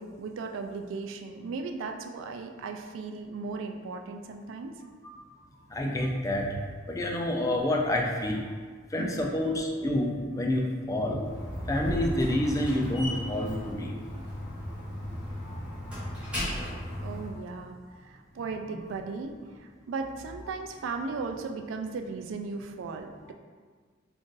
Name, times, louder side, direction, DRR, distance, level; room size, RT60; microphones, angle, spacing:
voice 1, 0.0-4.7 9.0-9.3 17.0-17.8 18.0-19.3 19.6-23.3, right 4 dB, 80° right, 4 dB, 0.3 m, -36 dB
voice 2, 5.7-6.6 6.9-8.4 8.9-11.2 11.7-14.0 15.4-15.6 16.4-16.6, left 1 dB, 15° left, 0 dB, 0.3 m, -28 dB
Slam, 11.1-17.3, equal, 5° right, 0.8 m, -36 dB
2.5 x 2.5 x 3.7 m, 1.5 s
head